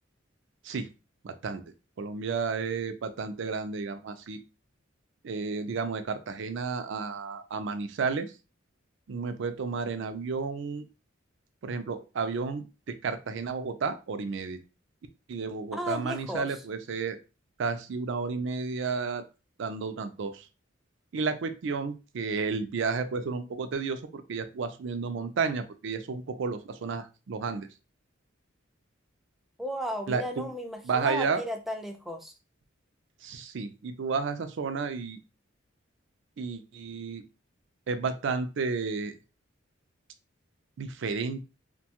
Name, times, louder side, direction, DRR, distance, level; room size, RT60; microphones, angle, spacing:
voice 1, 1.2-1.6 2.0-4.4 5.2-8.3 9.1-10.8 11.6-14.6 15.3-17.2 17.6-19.2 19.6-20.5 21.1-27.7 30.1-30.5 30.8-31.4 33.2-35.2 36.4-37.2 37.9-39.1 40.8-41.4, right 4 dB, 65° right, 9 dB, 0.4 m, -32 dB
voice 2, 15.7-16.5 29.6-32.3, equal, ahead, 4 dB, 0.4 m, -34 dB
2.7 x 2.2 x 2.8 m, 0.30 s
head